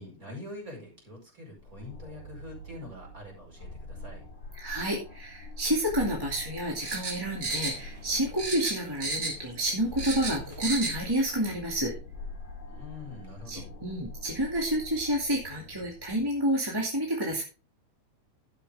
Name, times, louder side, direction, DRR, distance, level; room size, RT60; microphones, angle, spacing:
voice 1, 0.0-4.2 12.7-13.7, left 2 dB, 25° right, -1 dB, 5.2 m, -44 dB
sound 1, 1.6-16.1, left 2 dB, 25° left, 2.8 m, -44 dB
voice 2, 4.5-11.9 13.5-17.4, right 1 dB, 10° right, -2 dB, 1.8 m, -29 dB
sound 2, 6.8-8.1 8.4-9.5 9.8-11.0 11.3-11.4, right 3 dB, 50° right, 4.6 m, -33 dB
12.0 x 8.3 x 3.5 m, 0.32 s
omnidirectional pair, 3.5 m